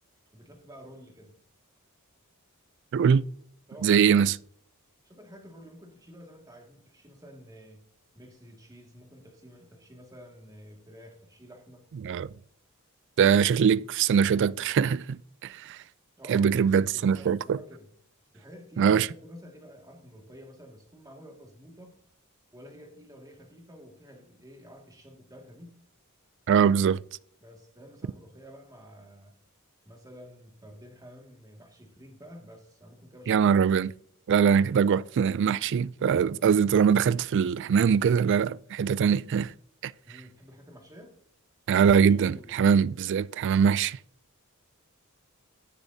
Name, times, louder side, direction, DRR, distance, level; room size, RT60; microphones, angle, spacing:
voice 1, 0.3-1.3 3.7-4.3 5.0-7.8 8.1-11.8 16.2-17.9 18.3-22.0 22.5-25.8 27.4-29.3 29.8-33.4 40.1-41.1 41.9-43.0, equal, 15° right, 2.0 m, -50 dB
voice 2, 2.9-3.2 3.8-4.3 12.0-12.3 13.2-15.8 16.3-17.6 18.8-19.1 26.5-27.0 33.3-33.9 34.3-39.5 39.8-39.9 41.7-44.0, right 7 dB, 55° right, 0.3 m, -22 dB
17.5 x 6.8 x 2.7 m
head